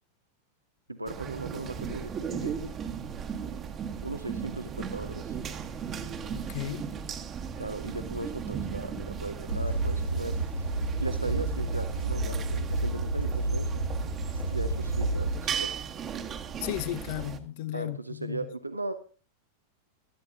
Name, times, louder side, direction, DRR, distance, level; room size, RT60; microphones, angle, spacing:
voice 1, 0.9-2.7 4.0-5.4 7.6-13.8 14.5-15.7 17.7-18.9, right 2 dB, 85° right, 0.7 m, -38 dB
sound 1, 1.1-17.4, right 7 dB, 25° right, 1.2 m, -37 dB
voice 2, 6.3-6.9 16.6-18.4, left 14 dB, 50° left, 0.5 m, -34 dB
sound 2, 9.5-15.4, right 2 dB, 85° left, 1.1 m, -30 dB
16.5 x 12.0 x 2.7 m
figure-of-eight pair, 90°, 0 cm